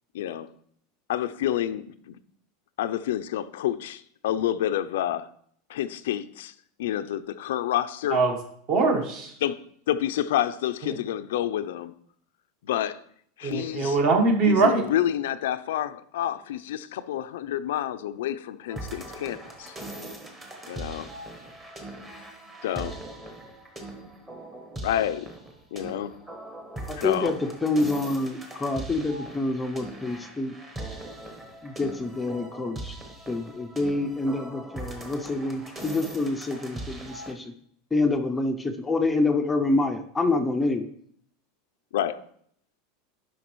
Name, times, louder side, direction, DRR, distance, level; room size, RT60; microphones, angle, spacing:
voice 1, 0.1-0.5 1.1-2.1 2.8-5.3 5.7-6.5 6.8-8.2 9.4-11.9 12.6-13.0 13.4-14.0 14.5-19.8 20.7-21.1 22.6-23.0 24.8-25.3 25.7-26.2 27.0-27.4 41.9-42.2, left 11 dB, 90° left, 0.4 m, -28 dB
voice 2, 8.7-9.4 10.8-10.9 13.4-14.8, right 3 dB, 45° right, 1.2 m, -22 dB
sound 1, 18.7-37.3, right 1 dB, 15° right, 1.0 m, -40 dB
voice 3, 26.9-30.6 31.6-32.9 33.3-37.5 37.9-40.9, left 2 dB, 10° left, 0.4 m, -27 dB
11.0 x 5.2 x 3.1 m
supercardioid pair, 165°, 0 cm